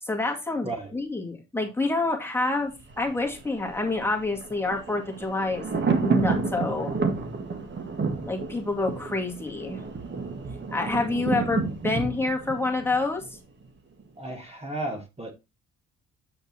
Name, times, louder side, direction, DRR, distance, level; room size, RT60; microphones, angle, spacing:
voice 1, 0.0-2.7 3.0-7.0 8.3-9.8 10.7-13.2, left 2 dB, 10° left, 2.2 m, -28 dB
Thunder, 2.7-13.7 14.0-14.1, right 4 dB, 40° right, 1.8 m, -30 dB
voice 2, 14.2-15.3, right 2 dB, 20° right, 1.7 m, -34 dB
7.9 x 6.6 x 2.9 m
cardioid pair, 90°, 30 cm